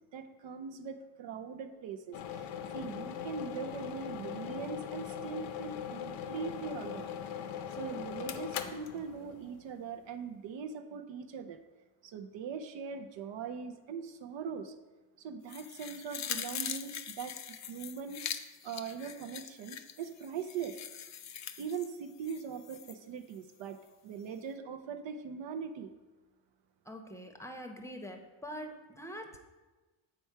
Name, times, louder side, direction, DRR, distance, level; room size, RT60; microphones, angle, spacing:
voice 1, 0.1-7.1 7.7-11.6 12.0-14.7 15.2-18.2 18.6-20.8 21.6-25.9, right 6 dB, 65° right, 7 dB, 0.6 m, -41 dB
sound 1, 2.1-9.8, left 8 dB, 75° left, 0.7 m, -40 dB
sound 2, 15.5-23.0 23.3-23.4, left 9 dB, 35° left, 0.4 m, -42 dB
voice 2, 26.9-29.4, equal, 5° left, 3 dB, 0.8 m, -44 dB
7.0 x 4.4 x 4.6 m, 1.2 s
cardioid pair, 90°, 49 cm